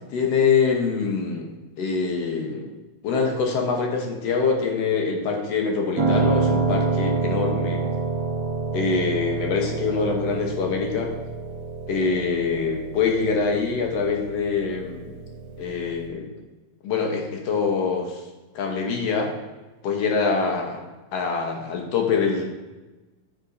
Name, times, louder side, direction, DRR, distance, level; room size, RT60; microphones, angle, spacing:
voice 1, 0.1-1.5 1.8-2.7 3.0-7.8 8.7-11.1 11.9-15.1 15.6-16.3 16.8-18.2 18.6-19.3 19.8-20.8 21.1-22.4, left 5 dB, 65° left, 1 dB, 1.7 m, -24 dB
Piano, 6.0-16.1, right 4 dB, 70° right, 1.4 m, -28 dB
10.5 x 3.9 x 2.6 m, 1.2 s
omnidirectional pair, 3.5 m